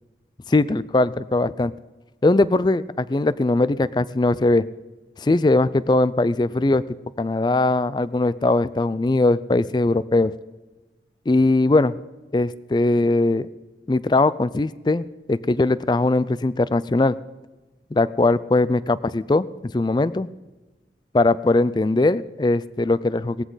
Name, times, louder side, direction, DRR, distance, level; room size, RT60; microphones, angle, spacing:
voice 1, 0.5-1.7 2.2-4.6 5.2-6.8 7.2-10.3 11.3-11.9 12.3-13.5 13.9-17.2 17.9-19.5 19.7-20.3 21.1-23.4, left 2 dB, 25° left, 17 dB, 0.3 m, -20 dB
18.5 x 14.0 x 4.0 m, 1.2 s
head